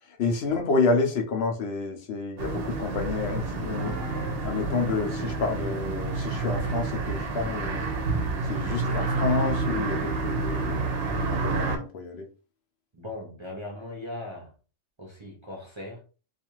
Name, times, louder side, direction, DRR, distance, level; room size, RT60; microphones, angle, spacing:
voice 1, 0.1-4.0 4.4-7.9 8.5-10.8 11.1-12.3, left 4 dB, 65° left, 0.8 m, -29 dB
sound 1, 2.4-11.8, right 3 dB, 60° right, 0.8 m, -29 dB
voice 2, 12.9-14.5 15.0-16.0, left 2 dB, 35° right, 0.5 m, -39 dB
2.4 x 2.4 x 2.9 m
omnidirectional pair, 1.2 m